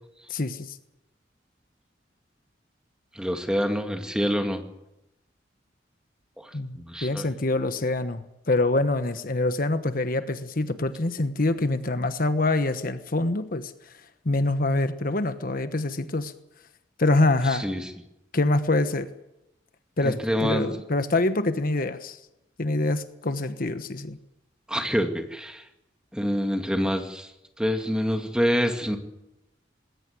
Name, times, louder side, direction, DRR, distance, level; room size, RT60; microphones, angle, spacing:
voice 1, 0.3-0.8 6.5-13.7 14.2-16.3 17.0-17.7 18.3-19.1 20.0-22.2 22.6-24.2, left 2 dB, 50° left, 10 dB, 1.2 m, -25 dB
voice 2, 3.2-4.6 6.4-6.5 6.8-7.3 17.5-17.9 20.0-20.7 24.7-25.6 26.1-27.3 27.6-29.0, equal, 5° right, 5 dB, 2.1 m, -26 dB
20.5 x 17.5 x 9.7 m, 0.88 s
head